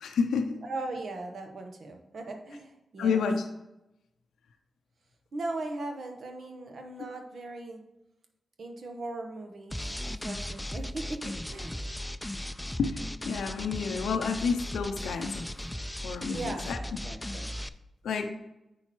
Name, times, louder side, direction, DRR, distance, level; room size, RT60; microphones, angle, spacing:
voice 1, 0.0-0.6 3.0-3.4 12.8-15.5 16.0-16.8 17.2-17.3 18.0-18.3, left 5 dB, 85° left, 6 dB, 0.5 m, -29 dB
voice 2, 0.6-3.3 5.3-7.8 8.6-11.8 16.3-17.5, right 2 dB, 70° right, 4 dB, 0.9 m, -39 dB
sound 1, 9.7-17.7, left 1 dB, 10° left, 0.4 m, -37 dB
7.6 x 5.8 x 3.0 m, 0.93 s
supercardioid pair, 45°, 0 cm